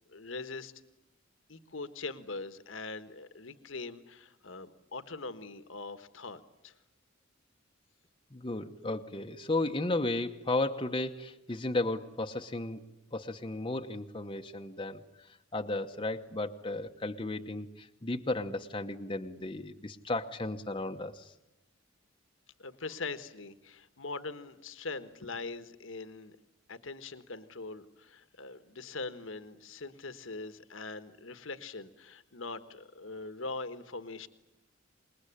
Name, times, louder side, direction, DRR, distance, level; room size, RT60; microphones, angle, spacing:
voice 1, 0.1-0.7 1.5-6.7 22.6-26.3 26.7-34.3, left 3 dB, 70° left, 11 dB, 1.4 m, -42 dB
voice 2, 8.3-21.3, left 2 dB, 25° left, 5 dB, 1.0 m, -34 dB
27.0 x 21.0 x 10.0 m, 0.94 s
head